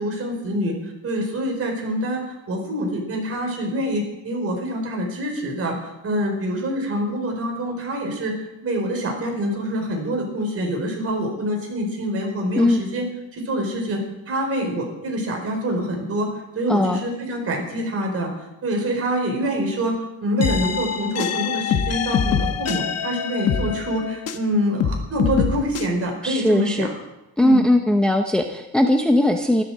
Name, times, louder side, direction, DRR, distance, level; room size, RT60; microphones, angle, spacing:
voice 1, 0.0-8.3 8.6-13.0 13.3-16.3 16.5-26.9 27.4-27.6, equal, 40° right, 2 dB, 4.5 m, -26 dB
voice 2, 16.7-17.0 26.2-26.9 27.4-29.6, left 1 dB, ahead, 4 dB, 0.6 m, -19 dB
sound 1, 20.4-24.5 24.8-25.9, left 7 dB, 45° left, 1.2 m, -24 dB
13.5 x 12.5 x 7.5 m, 0.95 s
cardioid pair, 170°, 36 cm